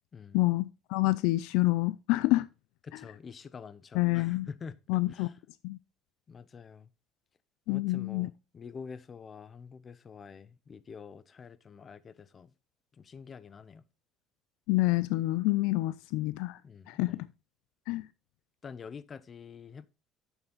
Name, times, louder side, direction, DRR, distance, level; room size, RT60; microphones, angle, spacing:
voice 1, 0.3-2.5 3.9-4.5 4.9-5.3 5.6-5.8 7.7-8.3 14.7-16.6 16.9-17.3 17.9-18.1, left 20 dB, 75° left, 0.4 m, -27 dB
voice 2, 2.8-4.8 5.1-5.3 6.3-6.9 7.7-12.5 13.0-13.8 16.6-17.2 18.6-19.9, left 6 dB, 25° left, 0.6 m, -47 dB
8.8 x 7.1 x 3.9 m
cardioid pair, 155°, 0 cm